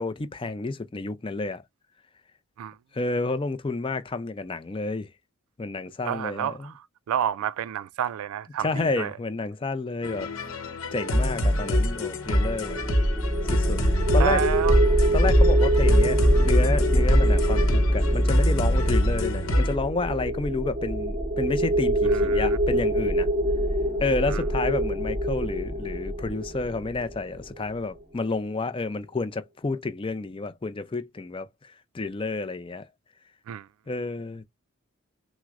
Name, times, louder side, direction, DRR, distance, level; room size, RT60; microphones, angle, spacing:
voice 1, 0.0-1.6 2.9-5.1 5.6-6.7 8.6-10.3 10.9-12.8 13.4-13.8 14.1-14.4 15.1-23.3 24.0-32.9 33.9-34.4, left 3 dB, 25° left, 0.4 m, -30 dB
voice 2, 6.0-6.7 7.1-9.1 14.1-14.8 22.1-22.6 24.3-24.4 33.5-33.7, right 9 dB, 80° right, 0.3 m, -29 dB
sound 1, 10.0-19.8, equal, 70° left, 0.9 m, -25 dB
sound 2, 12.2-27.4, right 1 dB, 20° right, 0.9 m, -24 dB
5.9 x 2.1 x 2.4 m
head